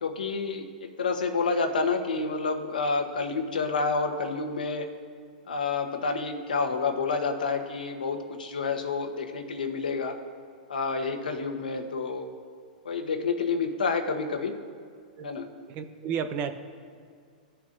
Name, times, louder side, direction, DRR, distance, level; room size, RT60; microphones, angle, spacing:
voice 1, 0.0-4.9 5.5-10.2 10.7-12.3 12.8-14.5 15.2-15.5, left 4 dB, 90° left, 4 dB, 1.1 m, -29 dB
voice 2, 15.7-16.6, right 7 dB, 40° right, 9 dB, 0.8 m, -32 dB
17.0 x 7.0 x 2.6 m, 2.1 s
hypercardioid pair, 120°, 5 cm